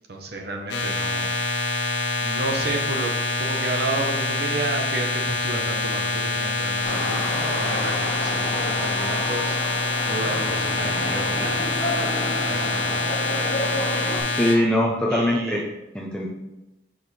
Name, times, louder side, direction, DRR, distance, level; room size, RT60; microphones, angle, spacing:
voice 1, 0.1-1.3 2.2-3.1 3.4-12.1 12.4-13.2 15.1-15.6, right 2 dB, 60° right, 2 dB, 0.9 m, -31 dB
sound 1, 0.7-14.5, left 3 dB, 70° left, 1.1 m, -26 dB
sound 2, 6.8-14.2, left 1 dB, 40° left, 1.5 m, -30 dB
voice 2, 14.4-15.6 15.9-16.3, left 1 dB, 5° left, -3 dB, 0.6 m, -21 dB
6.2 x 5.1 x 4.2 m, 0.98 s
head